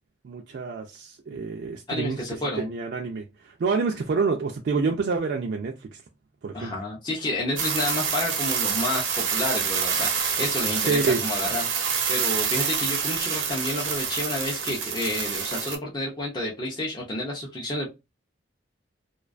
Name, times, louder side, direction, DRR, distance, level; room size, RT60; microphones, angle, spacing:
voice 1, 0.2-6.0 6.4-6.7 10.9-11.2, right 4 dB, 55° right, 0.3 m, -27 dB
voice 2, 1.9-2.7 6.5-17.9, left 1 dB, 20° left, 0.4 m, -30 dB
sound 1, 7.6-15.7, right 6 dB, 90° right, 0.6 m, -27 dB
2.3 x 2.2 x 2.4 m
head